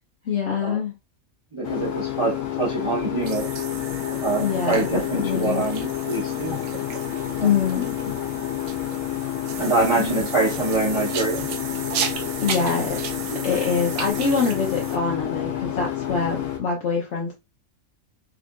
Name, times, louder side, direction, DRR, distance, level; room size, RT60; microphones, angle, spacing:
voice 1, 0.3-0.9 4.4-5.7 7.4-8.1 10.0-10.2 12.4-13.0 13.4-17.3, left 6 dB, 60° left, 1.0 m, -25 dB
voice 2, 1.5-3.5 4.2-6.6 7.4-7.5 9.6-11.5, right 3 dB, 25° right, 0.8 m, -25 dB
sound 1, 1.6-16.6, left 11 dB, 85° left, 1.2 m, -29 dB
sound 2, 3.2-15.0, right 7 dB, 75° right, 1.0 m, -35 dB
5.0 x 2.5 x 2.3 m
omnidirectional pair, 1.4 m